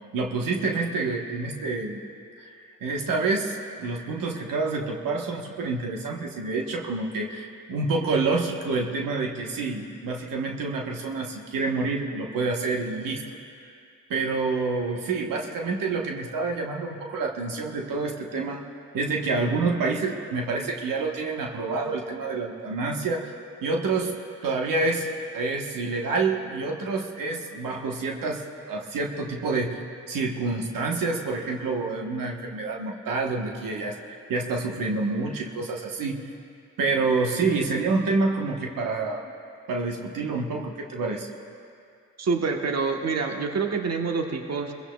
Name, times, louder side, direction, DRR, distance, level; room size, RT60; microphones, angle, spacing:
voice 1, 0.1-2.0 2.4-2.5 2.8-13.2 14.1-18.6 18.9-23.3 23.6-24.1 24.4-29.8 30.1-36.2 36.8-39.3 39.7-41.3, right 3 dB, 80° right, 0 dB, 1.2 m, -28 dB
voice 2, 42.2-44.7, right 4 dB, 50° right, 3 dB, 1.2 m, -26 dB
22.5 x 16.0 x 2.3 m, 2.4 s
supercardioid pair, 50°, 33 cm